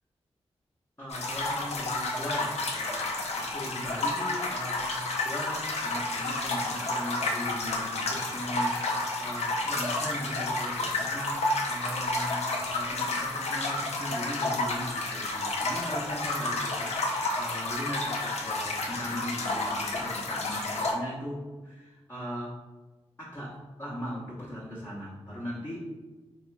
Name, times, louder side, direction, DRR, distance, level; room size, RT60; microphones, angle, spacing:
voice 1, 1.0-3.1 3.3-4.9 5.2-22.6 23.2-25.8, equal, 20° left, -7 dB, 0.9 m, -38 dB
sound 1, 1.1-20.9, left 2 dB, 70° left, 0.6 m, -31 dB
3.1 x 2.2 x 3.2 m, 1.2 s
cardioid pair, 45°, 11 cm